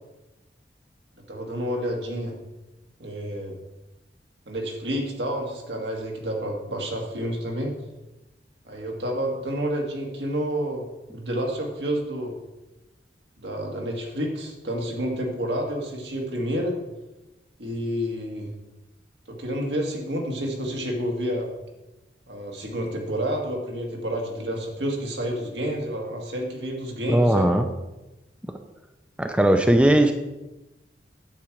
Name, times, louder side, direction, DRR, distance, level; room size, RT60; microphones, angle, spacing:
voice 1, 1.3-2.3 3.0-3.6 4.5-7.7 8.6-10.8 11.1-12.4 13.4-16.8 17.6-18.5 19.3-21.5 22.3-27.5, equal, 80° right, 0 dB, 2.0 m, -29 dB
voice 2, 27.1-27.7 29.2-30.1, right 1 dB, 5° right, 6 dB, 0.5 m, -18 dB
8.8 x 4.7 x 7.6 m, 1.0 s
head